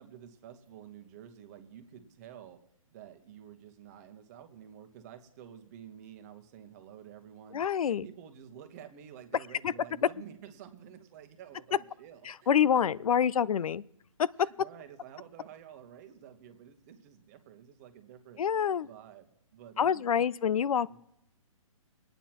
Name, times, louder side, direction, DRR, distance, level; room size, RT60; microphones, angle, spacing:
voice 1, 0.0-2.6 2.9-7.6 8.0-12.9 13.5-13.6 14.4-18.4 18.8-20.2 20.9-21.0, right 9 dB, 30° right, 7 dB, 1.1 m, -50 dB
voice 2, 7.5-8.1 9.6-9.7 12.3-13.8 14.2-14.5 18.4-18.9 19.8-21.0, left 8 dB, 85° left, 22 dB, 0.4 m, -27 dB
24.0 x 9.1 x 3.0 m, 0.78 s
hypercardioid pair, 155°, 18 cm